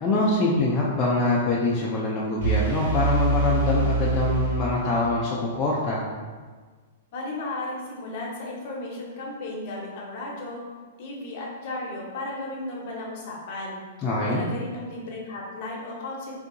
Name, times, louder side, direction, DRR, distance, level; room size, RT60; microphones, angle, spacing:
voice 1, 0.0-6.0 14.0-14.4, left 2 dB, 20° left, -6 dB, 0.3 m, -24 dB
sound 1, 2.4-5.3, right 4 dB, 65° right, 1.5 m, -25 dB
voice 2, 7.1-10.7 11.0-13.8 14.2-16.4, left 2 dB, 40° left, -2 dB, 0.7 m, -34 dB
3.6 x 2.7 x 2.5 m, 1.5 s
hypercardioid pair, 165°, 0 cm